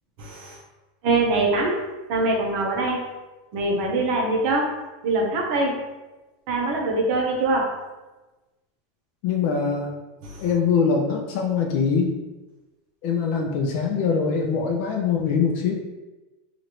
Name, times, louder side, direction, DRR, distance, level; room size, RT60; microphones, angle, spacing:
voice 1, 0.2-0.6 1.0-1.8 2.1-3.0 3.5-4.8 5.0-5.8 6.5-7.8 10.2-10.4, right 2 dB, 55° right, 0 dB, 0.7 m, -23 dB
voice 2, 9.2-9.9 10.4-12.2 13.0-15.7, left 5 dB, 60° left, 1 dB, 0.4 m, -23 dB
3.0 x 2.5 x 2.9 m, 1.1 s
supercardioid pair, 145°, 0 cm